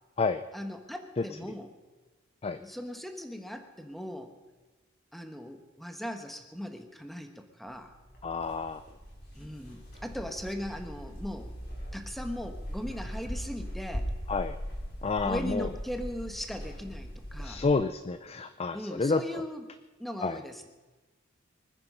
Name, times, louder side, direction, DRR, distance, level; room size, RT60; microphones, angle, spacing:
voice 1, 0.5-1.7 2.6-4.3 5.1-7.9 9.3-11.5 11.9-14.1 15.2-17.6 18.7-19.7 20.0-20.7, equal, ahead, 6 dB, 1.3 m, -39 dB
sound 1, 7.8-17.7, equal, 55° left, 4.8 m, -40 dB
voice 2, 8.2-8.8 14.3-14.6 15.0-15.7 17.4-19.4 20.2-20.4, left 4 dB, 30° left, 11 dB, 0.5 m, -29 dB
24.5 x 9.9 x 5.6 m, 1.2 s
head